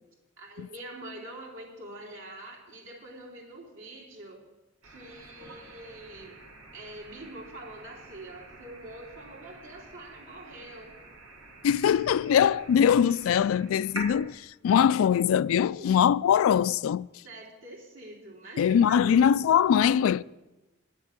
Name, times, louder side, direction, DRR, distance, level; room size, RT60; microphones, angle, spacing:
voice 1, 0.4-4.4 4.8-6.4 6.7-11.0 15.8-15.9 17.1-19.2, right 1 dB, 70° right, 3.1 m, -45 dB
sound 1, 4.8-14.2, right 2 dB, 90° right, 2.5 m, -47 dB
voice 2, 11.6-17.1 18.6-20.2, left 8 dB, 90° left, 0.3 m, -22 dB
10.5 x 7.2 x 8.8 m
head